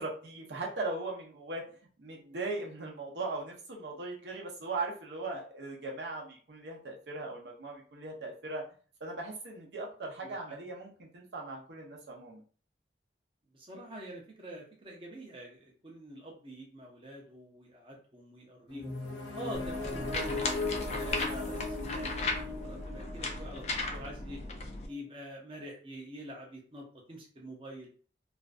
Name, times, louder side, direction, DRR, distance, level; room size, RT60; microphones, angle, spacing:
voice 1, 0.0-1.7 2.0-8.6 9.0-12.4, right 3 dB, 75° right, -1 dB, 0.6 m, -39 dB
voice 2, 10.2-10.6 13.5-18.9 19.3-23.6 23.9-24.4 24.8-27.9, equal, 30° right, -1 dB, 0.5 m, -46 dB
sound 1, 18.7-24.5, left 3 dB, 75° left, 0.9 m, -38 dB
sound 2, 19.5-24.9, left 2 dB, 40° left, 0.3 m, -36 dB
2.4 x 2.2 x 2.4 m, 0.41 s
head